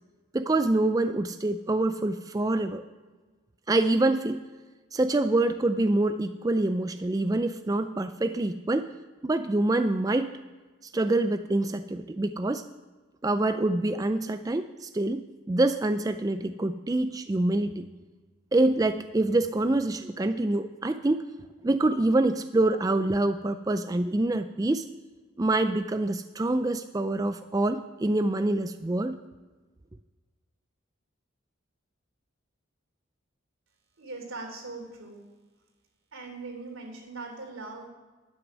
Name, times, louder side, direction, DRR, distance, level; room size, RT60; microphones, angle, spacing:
voice 1, 0.3-2.8 3.7-4.4 4.9-8.9 9.2-10.3 10.9-12.6 13.2-17.9 18.5-21.2 21.6-24.9 25.4-29.2, right 2 dB, 15° right, 9 dB, 0.3 m, -26 dB
voice 2, 34.0-35.3 36.1-37.9, right 3 dB, 90° right, 1 dB, 3.3 m, -40 dB
11.5 x 9.4 x 6.2 m, 1.3 s
head